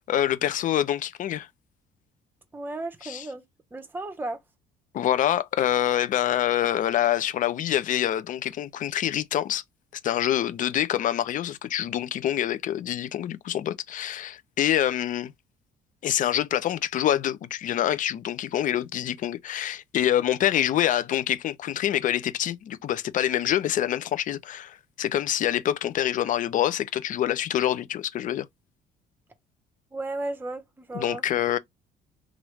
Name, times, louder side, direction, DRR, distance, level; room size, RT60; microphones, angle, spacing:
voice 1, 0.1-1.5 3.0-3.2 4.9-9.6 10.0-15.3 16.0-28.5 30.9-31.6, left 11 dB, 50° left, 0.5 m, -26 dB
voice 2, 2.5-3.4 3.7-4.4 29.9-31.2, right 2 dB, 10° right, 0.7 m, -34 dB
3.0 x 2.4 x 3.1 m
cardioid pair, 110°, 17 cm